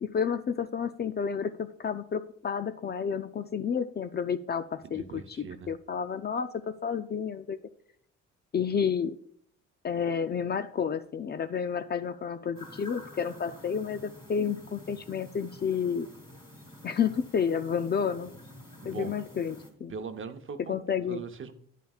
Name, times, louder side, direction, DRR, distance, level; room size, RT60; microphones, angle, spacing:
voice 1, 0.0-7.6 8.5-9.2 9.8-16.1 16.8-18.3 18.8-19.9 20.6-21.2, left 7 dB, 35° left, 11 dB, 0.4 m, -30 dB
voice 2, 4.8-5.7 18.8-19.1 19.9-20.8 21.1-21.5, right 6 dB, 40° right, 7 dB, 0.8 m, -40 dB
sound 1, 12.5-19.7, left 1 dB, 15° left, 2.5 m, -49 dB
10.0 x 9.1 x 2.4 m, 0.65 s
cardioid pair, 90°, 30 cm